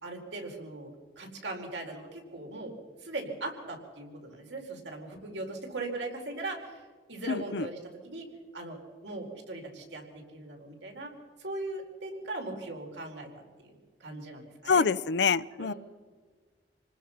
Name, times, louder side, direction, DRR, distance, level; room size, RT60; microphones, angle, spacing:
voice 1, 0.0-2.7 3.0-8.3 8.5-13.7 14.0-14.9 15.6-15.8, right 2 dB, 80° right, 1 dB, 4.5 m, -39 dB
voice 2, 7.3-7.7 14.7-15.7, left 5 dB, 75° left, 18 dB, 0.6 m, -26 dB
27.0 x 20.0 x 5.8 m, 1.5 s
head